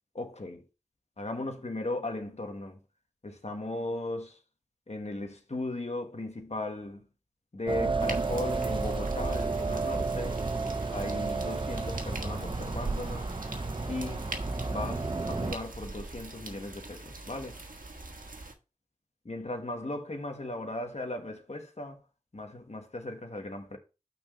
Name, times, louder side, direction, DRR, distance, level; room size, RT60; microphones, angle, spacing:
voice 1, 0.1-0.6 1.2-2.8 3.2-4.4 4.9-7.0 7.5-10.4 10.9-13.3 13.9-14.3 14.7-17.6 19.3-22.0 22.3-23.8, left 2 dB, 50° left, 1.5 m, -37 dB
sound 1, 7.7-15.6, right 3 dB, 35° right, 0.7 m, -32 dB
sound 2, 8.0-18.5, right 2 dB, 80° right, 1.4 m, -42 dB
6.2 x 4.6 x 5.5 m
wide cardioid pair, 50°, 14 cm